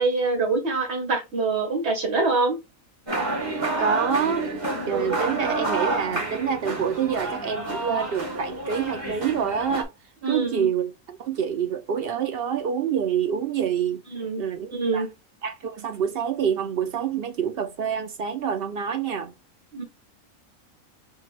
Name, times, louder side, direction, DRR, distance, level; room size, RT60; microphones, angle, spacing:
voice 1, 0.0-2.6 10.2-10.7 14.1-14.4 14.7-15.1 19.7-19.8, right 3 dB, 50° right, 1.6 m, -24 dB
sound 1, 3.1-9.8, right 2 dB, 20° right, 1.6 m, -29 dB
voice 2, 3.8-4.5 4.9-9.9 10.3-14.0 14.4-15.1 15.4-19.3, right 7 dB, 70° right, 0.5 m, -27 dB
4.5 x 2.3 x 4.4 m
omnidirectional pair, 1.5 m